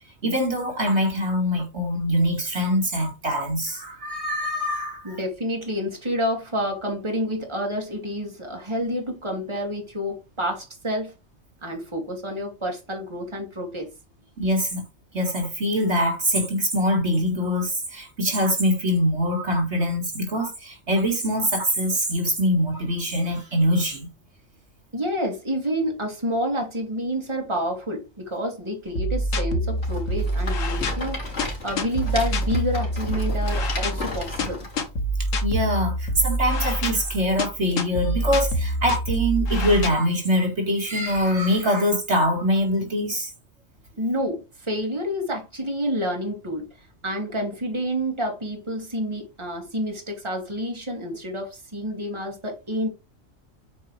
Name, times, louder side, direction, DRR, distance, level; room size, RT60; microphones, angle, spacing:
voice 1, 0.2-5.2 14.4-14.8 15.1-24.1 35.4-43.3, equal, 60° right, 2.2 m, -23 dB
voice 2, 5.0-11.1 11.6-13.9 24.9-34.6 44.0-46.7 47.0-52.9, equal, 20° right, 2.3 m, -29 dB
sound 1, 28.9-39.9, equal, 85° left, 1.6 m, -26 dB
Rattle, 29.8-34.9, left 2 dB, 65° left, 3.4 m, -34 dB
8.6 x 4.6 x 3.2 m
omnidirectional pair, 1.3 m